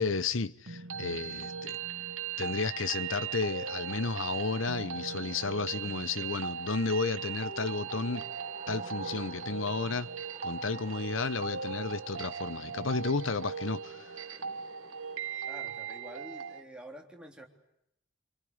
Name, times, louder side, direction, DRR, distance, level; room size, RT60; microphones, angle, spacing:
voice 1, 0.0-1.8 2.4-8.2 8.7-10.1 10.4-14.1, left 4 dB, 75° left, 1.0 m, -32 dB
sound 1, 0.7-16.6, right 6 dB, 85° right, 1.5 m, -39 dB
Deer rut - Brame Cerf, 3.7-15.5, right 3 dB, 35° right, 1.8 m, -52 dB
voice 2, 15.5-17.4, right 1 dB, 5° right, 3.6 m, -48 dB
26.5 x 26.0 x 8.0 m
head